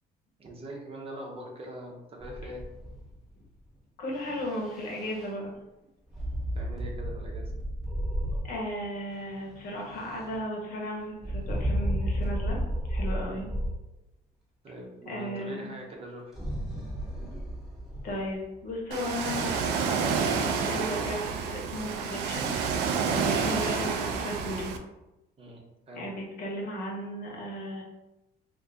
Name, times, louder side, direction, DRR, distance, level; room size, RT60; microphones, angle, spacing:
voice 1, 0.4-2.6 6.5-7.5 13.2-13.5 14.6-16.3 25.4-26.0, right 1 dB, 35° right, 0 dB, 0.7 m, -42 dB
sound 1, 2.2-3.3 4.1-5.3 6.1-8.7 9.1-10.4 11.2-13.8 16.3-18.7, equal, ahead, 1.0 m, -33 dB
voice 2, 4.0-5.5 8.4-12.6 12.9-13.5 15.1-15.7 18.0-22.5 23.1-24.7 25.9-27.8, equal, 60° left, -1 dB, 1.0 m, -35 dB
Ocean, 18.9-24.8, right 5 dB, 85° right, 0.4 m, -29 dB
2.6 x 2.5 x 3.4 m, 0.95 s
cardioid pair, 110°, 17 cm